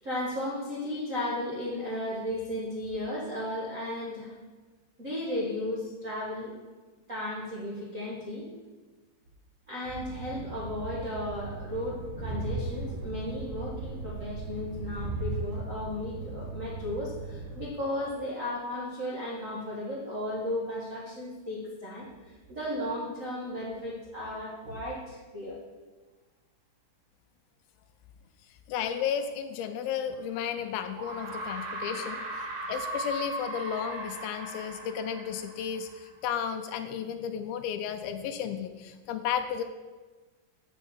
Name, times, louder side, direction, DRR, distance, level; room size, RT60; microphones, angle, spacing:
voice 1, 0.0-4.3 5.0-6.5 7.1-8.5 9.7-25.6, left 1 dB, 80° right, -6 dB, 0.7 m, -35 dB
Train, 9.8-17.7, right 3 dB, 35° right, 4.0 m, -37 dB
voice 2, 28.7-32.2 32.7-39.6, left 8 dB, 90° left, 7 dB, 2.4 m, -33 dB
sound 1, 30.1-30.2 31.0-36.2, right 1 dB, 65° right, 2.9 m, -38 dB
7.4 x 5.4 x 7.2 m, 1.3 s
omnidirectional pair, 4.1 m